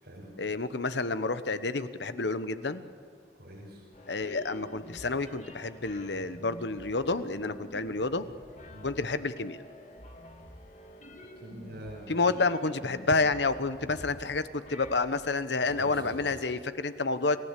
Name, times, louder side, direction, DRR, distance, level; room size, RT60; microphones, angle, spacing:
voice 1, 0.4-2.8 4.1-8.2 8.8-9.6 12.1-17.4, left 3 dB, 70° left, 12 dB, 1.1 m, -29 dB
voice 2, 3.4-3.8 8.7-8.9 11.4-12.4 15.6-16.1, right 1 dB, 60° right, -5 dB, 5.8 m, -45 dB
sound 1, 3.9-16.3, left 1 dB, 40° left, 2.6 m, -49 dB
28.5 x 15.5 x 8.4 m, 2.4 s
head